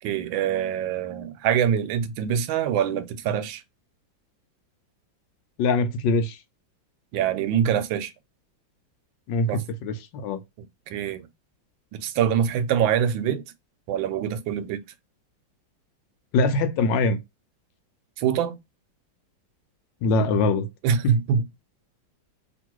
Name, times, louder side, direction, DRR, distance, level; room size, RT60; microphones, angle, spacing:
voice 1, 0.0-3.6 7.1-8.1 9.5-9.6 10.9-11.3 11.9-13.4 13.9-14.8 18.2-18.6 20.8-21.4, right 8 dB, 85° right, 1.3 m, -24 dB
voice 2, 5.6-6.4 9.3-10.4 16.3-17.2 20.0-20.7 21.0-21.2, left 3 dB, 75° left, 1.3 m, -23 dB
2.9 x 2.8 x 4.5 m
omnidirectional pair, 2.1 m